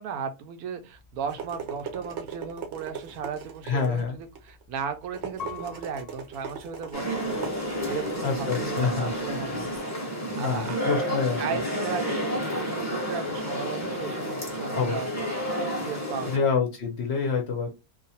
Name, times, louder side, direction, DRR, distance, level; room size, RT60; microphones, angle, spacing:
voice 1, 0.0-9.7 10.0-10.8 11.4-15.1 15.8-16.4, right 6 dB, 85° right, 1.1 m, -36 dB
sound 1, 0.9-9.8, right 6 dB, 60° right, 0.8 m, -41 dB
voice 2, 3.6-4.2 8.2-9.1 10.4-11.4 14.7-15.0 16.3-17.7, left 5 dB, 60° left, 0.7 m, -27 dB
Piano, 5.4-8.1 8.8-9.5, left 8 dB, 90° left, 0.3 m, -46 dB
sound 2, 6.9-16.4, equal, 15° left, 0.8 m, -30 dB
2.9 x 2.1 x 2.7 m
omnidirectional pair, 1.6 m